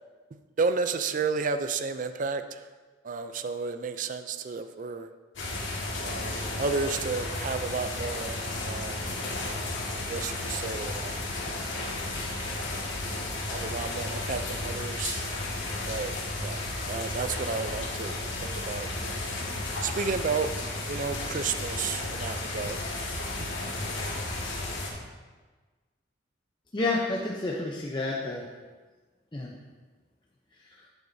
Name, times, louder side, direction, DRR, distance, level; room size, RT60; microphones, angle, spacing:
voice 1, 0.6-2.7 3.0-5.1 6.0-9.0 10.0-11.3 13.5-15.2 15.9-16.1 16.4-19.2 19.8-20.5 20.9-22.8 23.4-23.5, right 4 dB, 40° right, 10 dB, 0.4 m, -32 dB
sound 1, 5.4-24.9, left 2 dB, 75° left, 1.8 m, -33 dB
voice 2, 26.7-28.5 29.3-29.5 30.6-30.8, left 2 dB, 25° left, -3 dB, 0.7 m, -30 dB
12.0 x 8.1 x 2.7 m, 1.4 s
head